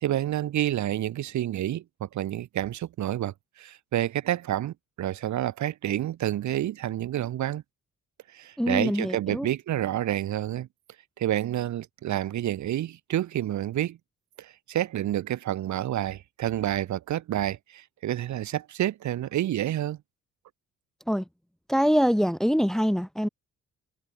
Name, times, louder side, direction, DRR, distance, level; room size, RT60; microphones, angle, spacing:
voice 1, 0.0-7.6 8.3-10.7 11.2-14.0 14.4-20.0, right 12 dB, 70° right, 1.5 m, -29 dB
voice 2, 8.6-9.5 21.1-21.2 21.7-23.3, equal, ahead, 1.1 m, -24 dB
cardioid pair, 90°, 30 cm